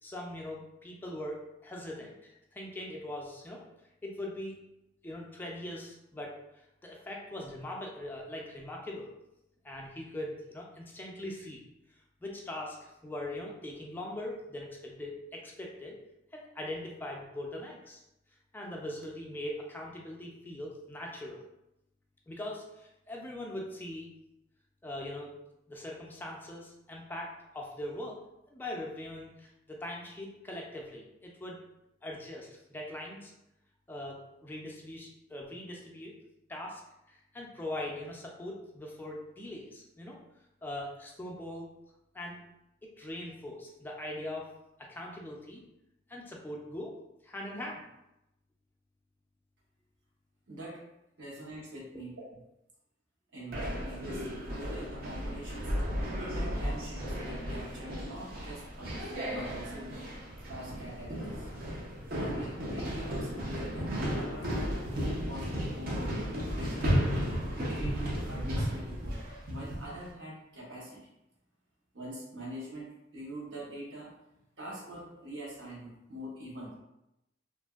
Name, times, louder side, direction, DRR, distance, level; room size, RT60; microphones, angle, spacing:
voice 1, 0.0-3.6 4.0-4.6 5.0-9.1 9.6-11.6 12.2-16.0 16.3-18.0 18.5-21.5 22.3-24.1 24.8-25.4 25.7-28.2 28.5-31.6 32.0-33.3 33.9-36.2 36.5-36.8 37.1-40.2 40.6-41.7 42.1-42.4 42.8-44.5 44.8-45.6 46.1-47.0 47.2-47.8, left 1 dB, 10° left, -2 dB, 0.4 m, -41 dB
voice 2, 50.5-50.8 51.2-52.2 53.3-55.7 56.2-59.9 60.5-61.5 62.1-67.0 67.5-71.1 71.9-74.1 74.6-76.8, right 1 dB, 65° right, -5 dB, 1.0 m, -44 dB
sound 1, 53.5-70.0, equal, 50° right, 0.6 m, -34 dB
2.8 x 2.5 x 2.3 m, 0.88 s
head